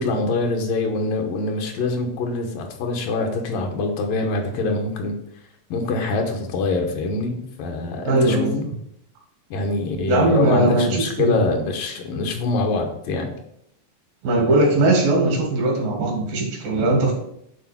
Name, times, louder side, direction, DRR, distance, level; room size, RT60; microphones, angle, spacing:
voice 1, 0.0-5.2 5.7-8.6 9.5-13.3, left 3 dB, 80° left, 3 dB, 2.7 m, -24 dB
voice 2, 8.1-8.5 10.1-11.4 14.2-17.1, right 2 dB, 85° right, 0 dB, 3.6 m, -19 dB
8.4 x 4.0 x 4.3 m, 0.76 s
omnidirectional pair, 3.9 m